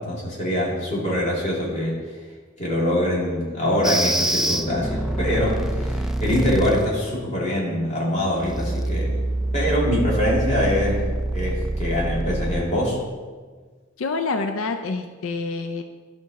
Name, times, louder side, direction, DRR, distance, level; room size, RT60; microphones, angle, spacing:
voice 1, 0.0-2.0 2.6-9.2 9.5-11.0 11.3-13.0, left 1 dB, 35° left, -5 dB, 2.5 m, -24 dB
sound 1, 3.8-6.9 8.3-12.6, right 1 dB, 5° right, 0.4 m, -25 dB
voice 2, 14.0-15.8, left 3 dB, 85° left, 7 dB, 0.5 m, -27 dB
12.5 x 5.2 x 4.1 m, 1.5 s
head